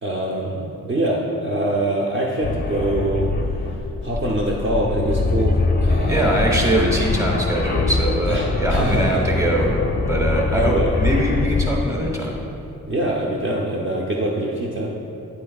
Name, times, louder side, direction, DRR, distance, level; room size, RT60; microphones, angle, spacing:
voice 1, 0.0-3.3 4.0-6.6 8.3-9.3 10.5-11.0 12.9-15.0, right 1 dB, 35° right, -3 dB, 0.6 m, -24 dB
sound 1, 2.4-12.0, left 3 dB, 30° left, 0.5 m, -23 dB
voice 2, 6.1-9.7 10.1-12.4, right 1 dB, 10° right, -1 dB, 1.0 m, -22 dB
9.1 x 8.5 x 2.3 m, 2.8 s
wide cardioid pair, 160°, 32 cm